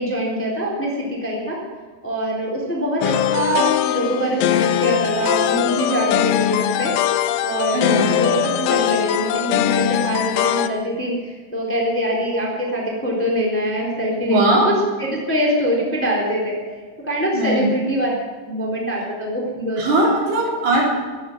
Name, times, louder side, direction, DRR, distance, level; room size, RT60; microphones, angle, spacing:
voice 1, 0.0-1.6 2.0-6.9 7.4-14.7 15.0-16.5 17.1-18.1 18.5-20.1, equal, 5° left, -2 dB, 3.0 m, -23 dB
sound 1, 3.0-10.7, left 12 dB, 90° left, 2.1 m, -21 dB
voice 2, 7.7-8.1 14.2-14.6 17.3-17.7 19.8-20.8, right 1 dB, 60° right, -2 dB, 5.9 m, -19 dB
16.5 x 11.0 x 7.5 m, 1.4 s
omnidirectional pair, 5.2 m